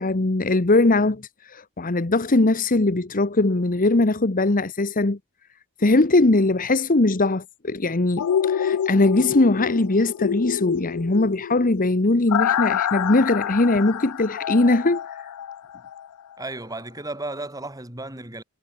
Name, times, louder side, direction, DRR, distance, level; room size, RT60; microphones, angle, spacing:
voice 1, 0.0-5.2 5.8-15.0, left 2 dB, 40° left, 1.1 m, -20 dB
sound 1, 8.2-16.1 16.4-16.5, left 9 dB, 85° left, 0.4 m, -27 dB
voice 2, 16.4-18.4, right 2 dB, 15° right, 4.8 m, -34 dB
head